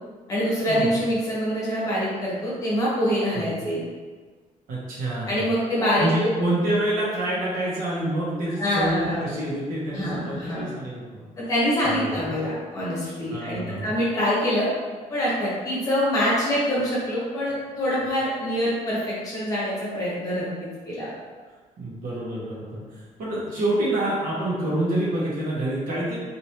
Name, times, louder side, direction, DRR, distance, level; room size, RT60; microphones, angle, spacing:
voice 1, 0.3-3.8 5.3-6.1 8.6-9.2 9.9-10.7 11.4-14.7 15.1-21.1, equal, 25° left, -8 dB, 1.0 m, -25 dB
voice 2, 4.7-5.4 6.0-11.2 11.8-12.4 13.3-13.9 21.8-22.8 23.2-26.2, right 1 dB, 75° right, -7 dB, 1.2 m, -27 dB
3.2 x 2.8 x 2.8 m, 1.4 s
cardioid pair, 180°, 14 cm